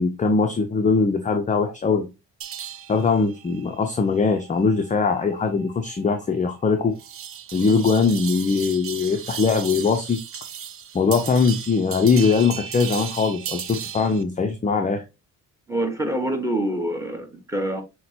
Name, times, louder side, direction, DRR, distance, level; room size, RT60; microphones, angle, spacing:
voice 1, 0.0-2.1 2.9-7.0 7.5-10.2 10.9-15.0, left 4 dB, 20° left, 0.5 m, -21 dB
sound 1, 2.4-14.2, right 8 dB, 40° right, 0.5 m, -36 dB
voice 2, 15.7-17.8, right 1 dB, 10° right, 1.2 m, -26 dB
5.7 x 2.2 x 2.7 m
supercardioid pair, 75°, 36 cm